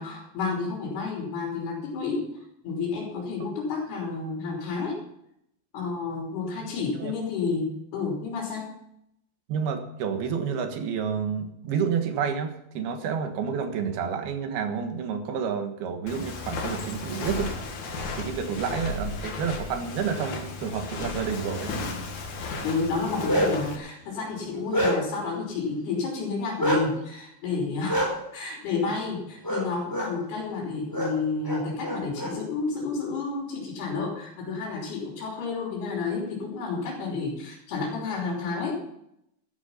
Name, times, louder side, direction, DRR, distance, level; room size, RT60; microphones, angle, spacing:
voice 1, 0.0-2.3 2.6-5.0 5.7-8.7 22.6-38.8, left 4 dB, 80° left, -3 dB, 5.3 m, -30 dB
voice 2, 9.5-17.5 18.2-21.7, right 7 dB, 80° right, 6 dB, 3.4 m, -29 dB
Walk footsteps, 16.1-23.8, left 3 dB, 55° left, 3.0 m, -34 dB
Bark, 23.0-23.7 24.2-25.2 26.6-26.8 27.9-28.1 29.4-29.6 29.9-30.1 30.9-31.1 31.4-32.3, equal, 5° left, 4.1 m, -26 dB
13.5 x 12.0 x 5.7 m, 0.77 s
omnidirectional pair, 4.4 m